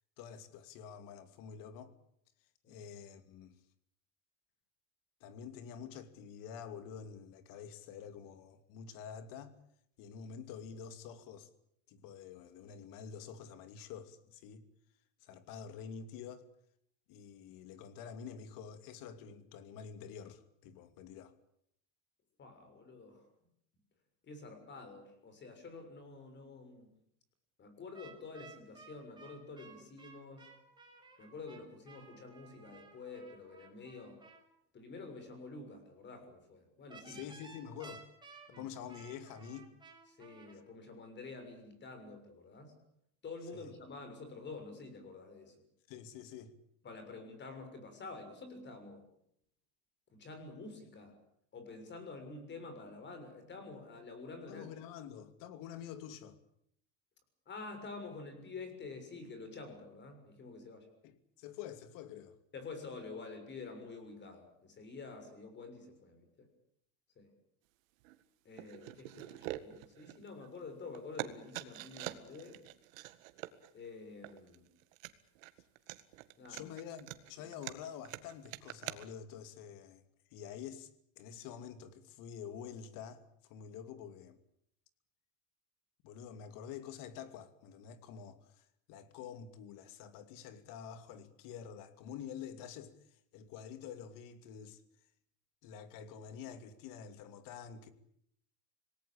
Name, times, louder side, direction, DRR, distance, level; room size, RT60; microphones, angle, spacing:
voice 1, 0.2-1.9 2.7-3.6 5.2-9.6 10.0-11.5 11.9-14.6 15.2-16.5 17.1-21.3 37.0-38.0 38.6-39.8 43.5-43.7 45.9-46.5 54.5-56.4 61.0-62.3 76.5-80.0 80.3-80.9 81.2-84.4 86.0-92.9 93.3-94.8 95.6-97.9, left 8 dB, 55° left, 2.8 m, -48 dB
voice 2, 22.4-23.3 24.2-26.9 27.6-30.4 31.2-34.2 34.7-37.2 38.5-38.6 40.2-42.7 43.2-45.6 46.8-49.0 50.1-51.2 51.5-54.7 57.5-60.9 62.5-66.5 67.2-67.3 68.4-72.7 73.7-74.7 76.4-76.7 77.4-77.5, left 3 dB, 30° left, 6.7 m, -48 dB
sound 1, 27.9-34.4 36.9-40.5, right 4 dB, 10° right, 5.8 m, -56 dB
sound 2, 68.0-68.2 68.6-70.7 70.9-79.1, right 17 dB, 85° right, 1.9 m, -45 dB
26.5 x 19.0 x 8.8 m
supercardioid pair, 140°, 39 cm